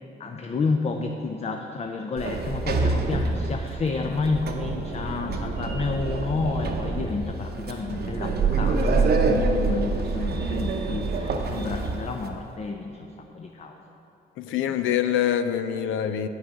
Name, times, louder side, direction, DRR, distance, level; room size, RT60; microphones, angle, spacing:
voice 1, 0.2-13.1 13.3-13.8, left 4 dB, 30° left, 3 dB, 0.5 m, -30 dB
Sliding door, 2.2-12.3, right 3 dB, 55° right, 0.8 m, -26 dB
voice 2, 14.4-16.3, left 10 dB, 80° left, 10 dB, 0.5 m, -25 dB
7.7 x 6.0 x 4.8 m, 2.9 s
cardioid pair, 90°, 20 cm